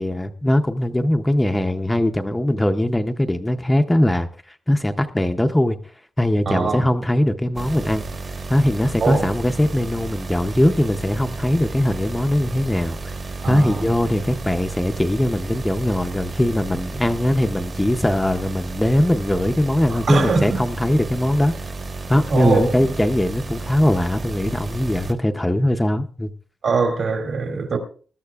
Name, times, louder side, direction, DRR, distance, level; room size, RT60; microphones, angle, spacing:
voice 1, 0.0-5.8 6.2-8.1 8.5-13.1 13.5-21.5 22.1-26.3, left 1 dB, 10° left, 0.5 m, -20 dB
voice 2, 6.5-6.9 9.0-9.3 13.4-13.9 19.9-20.6 22.3-22.8 26.6-27.8, right 4 dB, 60° right, 2.5 m, -22 dB
sound 1, 7.6-25.1, right 3 dB, 40° right, 1.2 m, -32 dB
20.5 x 12.5 x 2.3 m
wide cardioid pair, 180°, 0 cm